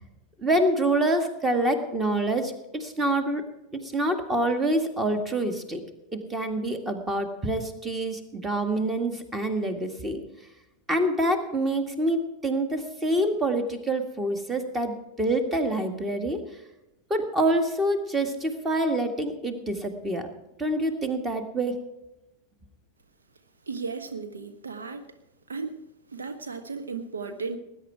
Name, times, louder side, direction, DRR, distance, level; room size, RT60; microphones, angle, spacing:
voice 1, 0.4-3.4 3.7-5.8 6.1-10.2 10.9-16.4 17.1-20.3 20.6-21.8, right 1 dB, 15° right, 7 dB, 2.0 m, -26 dB
voice 2, 23.7-25.0 25.5-25.8 26.1-27.6, right 4 dB, 70° right, 7 dB, 1.1 m, -35 dB
20.0 x 10.0 x 4.7 m, 0.94 s
figure-of-eight pair, 90°, 0 cm